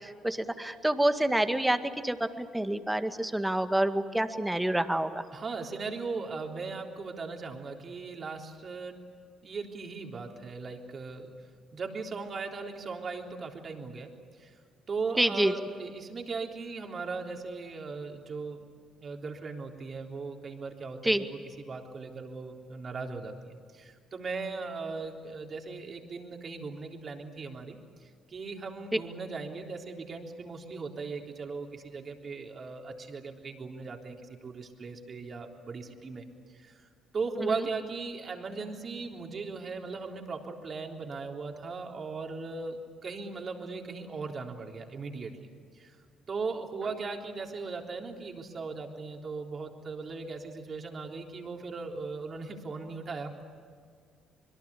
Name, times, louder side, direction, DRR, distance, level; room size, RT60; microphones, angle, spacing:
voice 1, 0.0-5.2 15.2-15.5 21.1-21.2, right 1 dB, 10° right, 8 dB, 2.0 m, -27 dB
voice 2, 5.3-9.0 9.4-11.3 11.7-14.1 14.4-14.6 14.9-18.7 19.0-36.9 37.1-45.3 45.7-46.0 46.3-53.4, right 4 dB, 45° right, 2 dB, 3.6 m, -38 dB
25.5 x 22.5 x 8.5 m, 2.1 s
hypercardioid pair, 55°, 0 cm